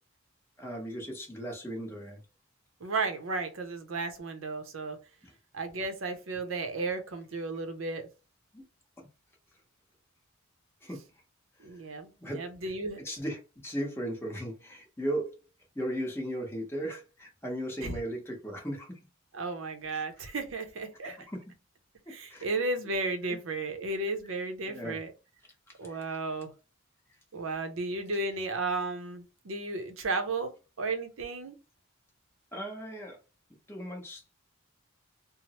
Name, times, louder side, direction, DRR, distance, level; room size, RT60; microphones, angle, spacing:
voice 1, 0.6-2.2 5.2-5.3 8.5-8.6 9.0-9.1 10.8-11.0 12.2-12.7 13.0-15.3 15.7-19.0 19.9-20.0 21.0-21.4 22.1-22.5 23.2-23.4 24.7-25.0 25.8-26.1 32.5-33.2 33.7-34.3, right 1 dB, 10° left, 0.8 m, -37 dB
voice 2, 2.8-5.0 5.5-8.1 11.6-13.0 17.8-18.0 19.3-21.2 22.1-25.1 25.8-26.5 27.3-31.6, right 3 dB, 65° right, 0.6 m, -34 dB
3.1 x 2.0 x 2.8 m
head